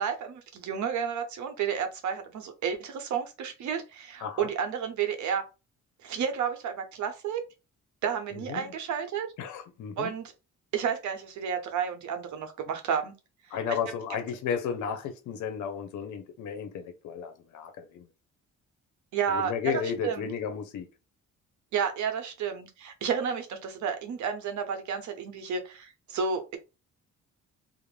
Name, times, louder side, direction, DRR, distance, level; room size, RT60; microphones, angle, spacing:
voice 1, 0.0-5.4 6.0-7.4 8.0-9.3 10.0-10.3 10.7-13.1 13.7-13.8 19.1-20.3 21.7-26.6, right 7 dB, 70° right, 0.8 m, -31 dB
voice 2, 8.3-8.7 9.4-10.1 13.5-18.1 19.3-20.9, left 7 dB, 80° left, 0.6 m, -33 dB
2.4 x 2.0 x 3.1 m
cardioid pair, 90°, 30 cm